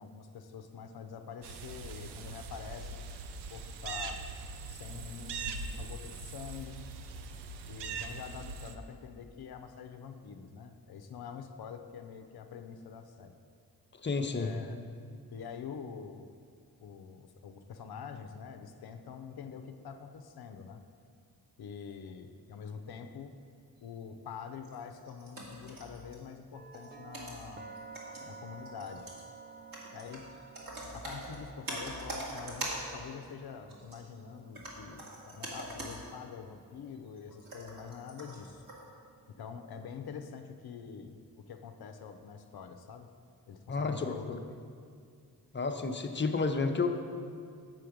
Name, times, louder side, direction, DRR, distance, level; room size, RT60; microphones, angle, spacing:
voice 1, 0.0-2.9 3.5-4.3 4.7-6.8 7.7-13.3 14.3-14.8 15.3-16.3 16.8-20.8 21.6-23.4 23.8-27.7 28.1-29.1 29.9-30.3 30.9-38.6 39.3-43.1 43.5-44.6, left 6 dB, 70° left, 7 dB, 0.6 m, -45 dB
sound 1, 1.4-8.7, right 4 dB, 90° right, 0.5 m, -41 dB
voice 2, 13.9-14.5 43.7-44.4 45.5-46.9, left 4 dB, 30° left, 5 dB, 0.6 m, -31 dB
sound 2, 24.6-26.4 26.7-33.0 33.7-34.1 34.5-36.1 36.4-36.5 37.0-38.9, right 1 dB, 55° right, 1.9 m, -43 dB
sound 3, 26.5-40.4, right 5 dB, 25° right, 0.4 m, -54 dB
7.7 x 4.6 x 5.0 m, 2.2 s
cardioid pair, 50°, 40 cm